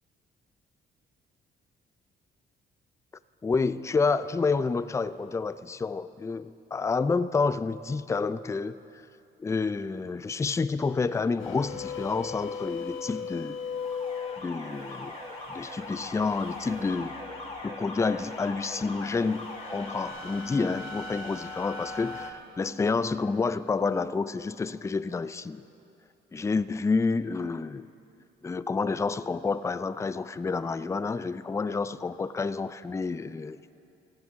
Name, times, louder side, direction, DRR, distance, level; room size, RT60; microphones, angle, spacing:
voice 1, 3.4-8.8 9.4-13.6 14.4-15.2 15.5-17.2 17.6-25.6 26.3-27.9 28.4-33.6, left 4 dB, 15° left, 15 dB, 0.4 m, -29 dB
sound 1, 11.4-17.6 18.0-22.3, left 5 dB, 85° left, 1.1 m, -39 dB
Alarm, 13.6-20.1, left 2 dB, 30° left, 3.3 m, -41 dB
18.0 x 16.0 x 3.6 m, 2.7 s
cardioid pair, 90°, 20 cm